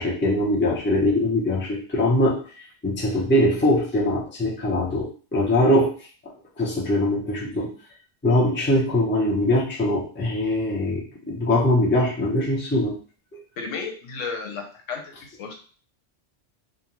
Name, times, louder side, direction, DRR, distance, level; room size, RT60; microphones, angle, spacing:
voice 1, 0.0-5.9 6.6-7.7 8.2-13.0 13.3-13.4, left 1 dB, 15° left, -5 dB, 0.4 m, -22 dB
voice 2, 13.6-15.6, left 5 dB, 85° left, 3 dB, 1.0 m, -33 dB
2.5 x 2.2 x 2.9 m, 0.40 s
omnidirectional pair, 1.3 m